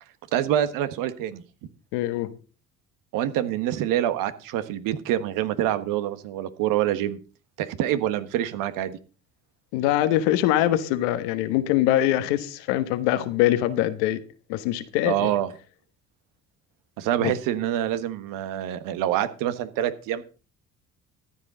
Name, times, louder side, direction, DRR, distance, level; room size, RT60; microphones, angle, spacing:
voice 1, 0.3-1.4 3.1-7.2 7.6-9.0 15.0-15.5 17.0-20.2, right 12 dB, 75° right, 1.4 m, -26 dB
voice 2, 1.9-2.3 9.7-14.2 14.5-15.3 17.2-17.3, left 13 dB, 80° left, 1.3 m, -23 dB
14.0 x 10.5 x 3.9 m
hypercardioid pair, 65°, 33 cm